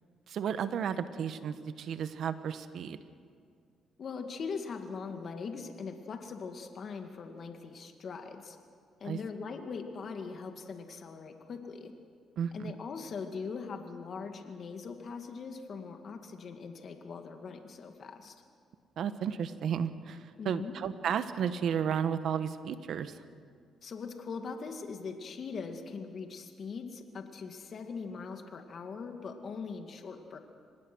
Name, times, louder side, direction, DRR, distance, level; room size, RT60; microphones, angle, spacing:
voice 1, 0.3-3.0 9.0-9.2 12.4-12.7 19.0-23.1, right 8 dB, 70° right, 11 dB, 1.2 m, -33 dB
voice 2, 4.0-8.6 9.0-11.9 12.5-18.3 20.4-20.8 23.8-30.4, left 5 dB, 55° left, 5 dB, 2.2 m, -41 dB
25.5 x 19.5 x 6.3 m, 2.2 s
cardioid pair, 90°, 0 cm